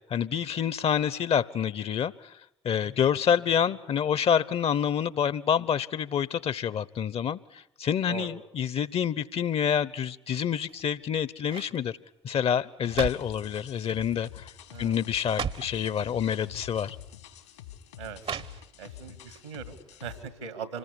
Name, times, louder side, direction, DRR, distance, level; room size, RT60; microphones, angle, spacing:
voice 1, 0.1-2.1 2.6-12.0 12.2-14.5 14.8-17.0, left 8 dB, 45° left, 21 dB, 1.0 m, -27 dB
sound 1, 10.6-11.0 11.4-11.8 12.6-13.4 14.2-14.5 14.7-14.8 15.2-15.8 16.7-16.8 18.2-18.9 19.3-19.4, right 7 dB, 45° right, 0.9 m, -36 dB
sound 2, 12.9-20.2, left 11 dB, 75° left, 3.0 m, -47 dB
voice 2, 14.7-15.1 18.0-18.2 18.8-20.8, right 7 dB, 80° right, 12 dB, 2.2 m, -40 dB
26.5 x 20.5 x 10.0 m, 0.81 s
figure-of-eight pair, 45°, 14 cm